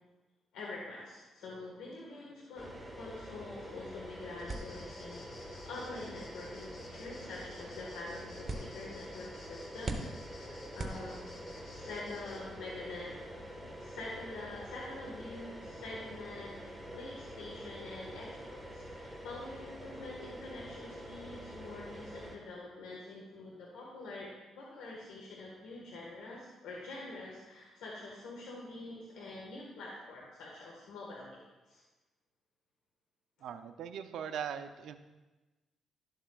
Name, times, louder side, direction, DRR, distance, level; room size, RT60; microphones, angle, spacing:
voice 1, 0.5-10.0 10.3-13.1 13.5-31.8, left 2 dB, 85° left, -3 dB, 1.5 m, -46 dB
sound 1, 2.6-22.4, equal, ahead, 1.5 m, -46 dB
sound 2, 4.4-12.4, left 2 dB, 55° left, 1.8 m, -56 dB
sound 3, 4.5-11.6, right 2 dB, 30° right, 1.1 m, -45 dB
voice 2, 33.4-35.0, right 8 dB, 75° right, 8 dB, 0.5 m, -40 dB
12.0 x 7.3 x 2.4 m, 1.1 s
cardioid pair, 90°, 0 cm